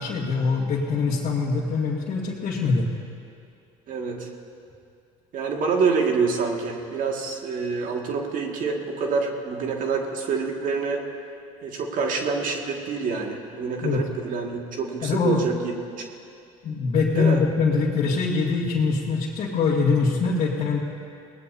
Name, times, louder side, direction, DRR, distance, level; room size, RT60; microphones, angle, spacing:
voice 1, 0.0-2.9 13.8-14.0 15.0-15.4 16.6-20.8, left 4 dB, 50° left, -7 dB, 2.2 m, -23 dB
voice 2, 3.9-4.3 5.3-11.0 11.6-16.0 17.1-17.4, right 5 dB, 55° right, 1 dB, 2.0 m, -27 dB
22.5 x 18.5 x 2.8 m, 2.5 s
hypercardioid pair, 75°, 16 cm